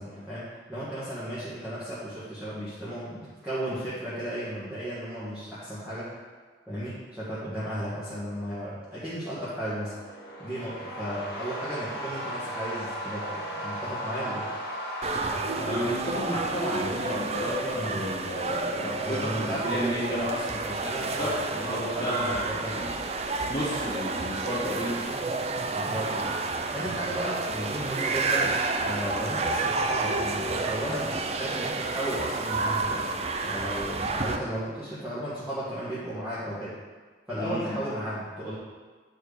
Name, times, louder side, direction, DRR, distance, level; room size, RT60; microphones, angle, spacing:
voice 1, 0.0-6.1 6.7-9.9 10.4-14.5 17.7-18.1 19.0-23.1 25.7-26.4 26.7-33.1 33.4-36.7 37.3-38.6, equal, 10° right, -12 dB, 1.6 m, -34 dB
sound 1, 9.6-16.6, equal, 55° left, 1.4 m, -36 dB
sound 2, 15.0-34.4, right 3 dB, 35° right, 0.4 m, -30 dB
voice 2, 15.5-20.2 21.0-22.4 22.7-22.9 23.4-25.0 37.3-37.8, equal, 20° left, -9 dB, 1.7 m, -32 dB
8.6 x 4.6 x 5.0 m, 1.4 s
head